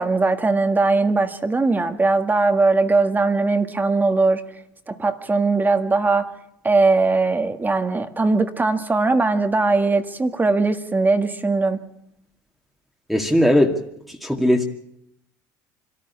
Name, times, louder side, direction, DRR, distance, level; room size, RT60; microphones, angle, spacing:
voice 1, 0.0-4.4 4.9-6.3 6.6-11.8, right 3 dB, 20° right, 1.7 m, -20 dB
voice 2, 13.1-13.8 14.1-14.6, left 1 dB, ahead, 2.2 m, -18 dB
25.0 x 14.0 x 8.4 m
hypercardioid pair, 75°, 10 cm